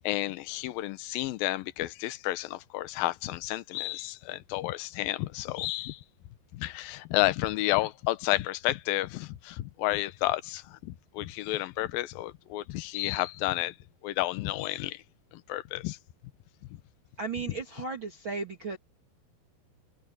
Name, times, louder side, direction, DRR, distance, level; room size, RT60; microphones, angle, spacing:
voice 1, 0.0-6.0 6.5-13.8 14.0-15.0 15.3-16.0, left 17 dB, 75° left, 2.3 m, -31 dB
voice 2, 17.2-18.8, right 4 dB, 35° right, 2.3 m, -35 dB
omnidirectional pair, 4.9 m